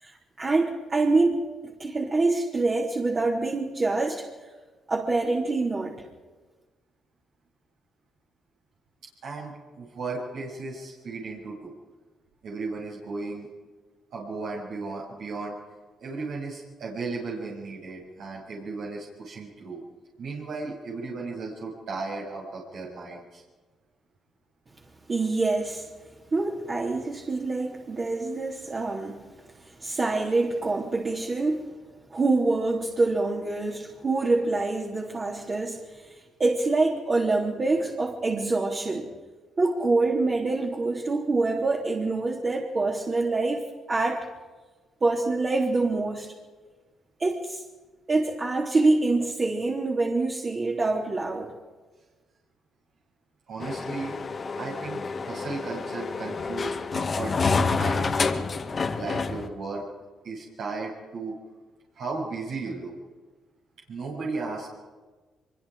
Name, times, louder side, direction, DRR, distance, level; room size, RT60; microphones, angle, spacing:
voice 1, 0.0-4.3 4.9-6.0 25.1-25.9 26.3-29.2 29.5-31.7 32.1-39.1 39.6-44.3 45.0-46.3 47.2-47.6 48.1-51.5, right 3 dB, 35° right, 3.4 m, -26 dB
voice 2, 9.2-11.7 12.4-13.5 14.1-15.5 16.0-19.8 20.2-23.4 53.5-54.1 54.6-58.4 58.9-59.8 60.2-61.4 62.0-62.9 63.9-64.7, right 3 dB, 70° right, 7.2 m, -35 dB
sound 1, 53.6-59.5, left 4 dB, 40° left, 1.9 m, -28 dB
24.5 x 24.0 x 5.0 m
cardioid pair, 90°, 0 cm